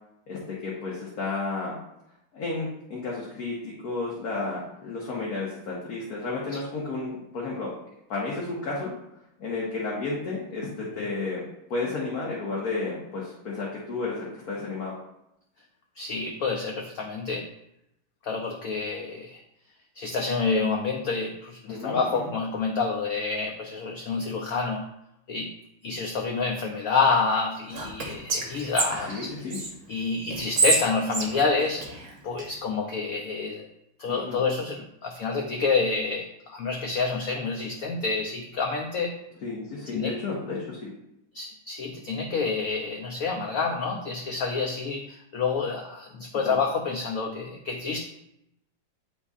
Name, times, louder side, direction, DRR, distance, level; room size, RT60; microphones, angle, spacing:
voice 1, 0.3-1.8 2.3-7.7 8.1-8.9 9.4-11.4 11.7-14.9 21.7-22.3 29.1-29.6 34.1-34.4 39.4-40.9 46.3-46.6, left 3 dB, 55° left, -5 dB, 1.6 m, -32 dB
voice 2, 16.0-17.5 18.2-19.4 20.0-24.9 25.3-25.5 25.8-29.3 29.9-31.8 32.2-33.7 34.0-39.1 39.9-40.1 41.3-48.0, left 4 dB, 70° left, 2 dB, 0.8 m, -28 dB
Whispering, 27.7-29.7 30.3-32.5, right 3 dB, 45° right, 1.3 m, -28 dB
9.4 x 4.1 x 2.4 m, 0.82 s
omnidirectional pair, 2.1 m